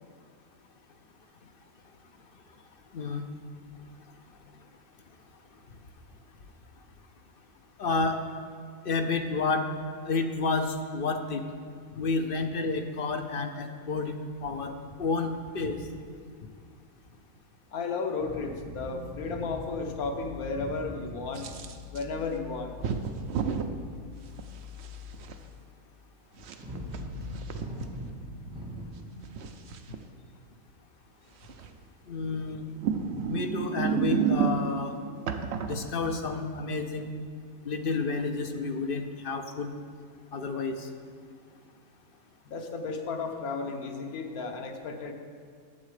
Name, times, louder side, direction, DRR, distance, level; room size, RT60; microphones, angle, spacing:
voice 1, 2.9-3.2 7.8-8.2 8.8-9.7 10.1-11.5 11.9-14.2 14.4-14.7 15.0-15.8 29.9-30.0 32.1-32.6 33.3-34.9 35.6-37.1 37.7-39.7 40.3-40.9, left 3 dB, 55° left, 6 dB, 0.7 m, -30 dB
voice 2, 17.7-21.5 21.9-22.7 42.4-45.1, left 4 dB, 90° left, 4 dB, 1.4 m, -34 dB
sound 1, 18.2-25.6 26.3-28.8, left 2 dB, 5° right, 1.9 m, -42 dB
sound 2, 21.3-22.0 22.8-23.7 24.4-25.3 26.4-27.9 29.0-30.0 31.4-31.8 32.7-34.8 35.3-36.4, right 7 dB, 60° right, 0.8 m, -31 dB
11.5 x 7.5 x 4.9 m, 2.1 s
omnidirectional pair, 1.5 m